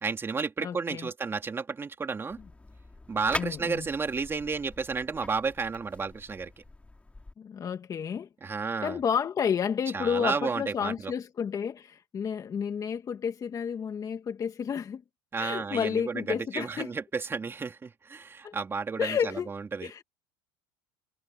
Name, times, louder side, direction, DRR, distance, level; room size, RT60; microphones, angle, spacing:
voice 1, 0.0-2.4 3.1-6.5 8.4-9.0 9.9-11.1 15.3-19.9, right 5 dB, 20° right, 2.9 m, -32 dB
voice 2, 0.6-1.1 3.4-3.9 7.4-8.3 8.8-15.0 15.4-16.9 18.4-18.6 19.0-19.5 19.8-20.0, left 7 dB, 30° left, 2.0 m, -31 dB
sound 1, 2.3-7.3, left 2 dB, 10° left, 3.5 m, -42 dB
supercardioid pair, 110°, 11 cm